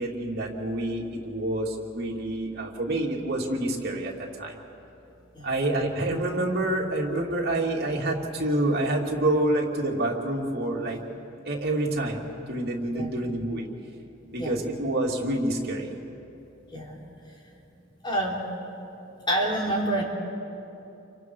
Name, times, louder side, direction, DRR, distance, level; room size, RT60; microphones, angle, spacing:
voice 1, 0.0-1.7 1.9-4.1 4.4-4.5 5.4-11.0 11.5-12.2 12.5-13.7 14.3-15.9, right 1 dB, 55° right, -2 dB, 2.9 m, -27 dB
voice 2, 16.7-17.0 18.0-18.4 19.3-20.0, right 1 dB, 25° left, -3 dB, 3.5 m, -27 dB
29.5 x 25.0 x 4.8 m, 2.9 s
head